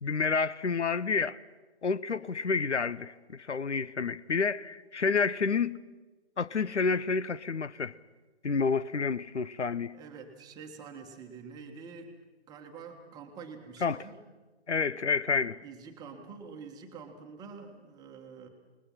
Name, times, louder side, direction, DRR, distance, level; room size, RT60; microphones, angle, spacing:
voice 1, 0.0-1.4 1.8-5.8 6.4-7.9 8.4-9.9 13.8-14.0 14.7-15.6, left 5 dB, 90° left, 0.8 m, -29 dB
voice 2, 9.9-12.1 12.5-14.2 15.4-18.5, right 5 dB, 10° right, 1.5 m, -47 dB
27.5 x 20.0 x 5.8 m
figure-of-eight pair, 140°, 34 cm